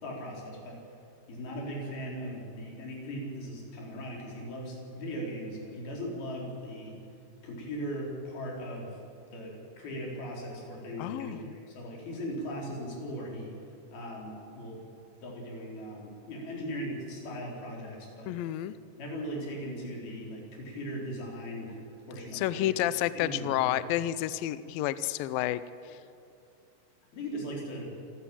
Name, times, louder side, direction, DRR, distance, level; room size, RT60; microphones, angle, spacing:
voice 1, 0.0-0.8 1.3-6.9 7.4-9.0 9.3-13.5 13.9-14.8 15.2-18.3 19.0-21.8 22.1-23.8 27.1-28.0, equal, 65° left, -2 dB, 5.9 m, -39 dB
voice 2, 11.0-11.4 18.3-18.8 22.3-26.0, left 13 dB, 85° left, 14 dB, 2.1 m, -30 dB
26.5 x 12.0 x 8.7 m, 2.7 s
omnidirectional pair, 4.8 m